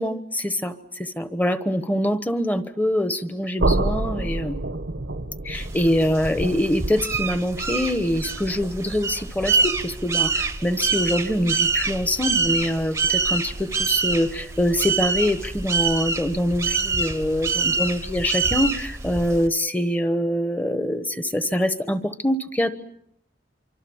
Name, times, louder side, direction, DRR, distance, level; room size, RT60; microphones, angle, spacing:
voice 1, 0.0-4.6 5.4-22.7, equal, 10° left, 11 dB, 1.2 m, -24 dB
sound 1, 3.6-9.5, right 2 dB, 80° right, 1.1 m, -29 dB
sound 2, 5.5-19.5, right 4 dB, 15° right, 0.9 m, -26 dB
25.5 x 25.0 x 7.2 m, 0.74 s
head